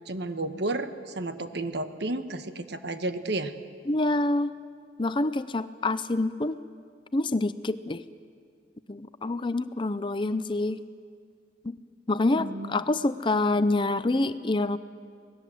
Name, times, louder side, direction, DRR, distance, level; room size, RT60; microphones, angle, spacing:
voice 1, 0.1-3.6 12.3-12.8, right 2 dB, 60° right, 9 dB, 1.3 m, -32 dB
voice 2, 3.9-4.5 5.0-6.6 7.1-8.0 8.9-10.8 11.6-11.8 12.1-14.8, left 2 dB, 25° left, 13 dB, 0.6 m, -26 dB
26.0 x 19.5 x 7.8 m, 2.1 s
head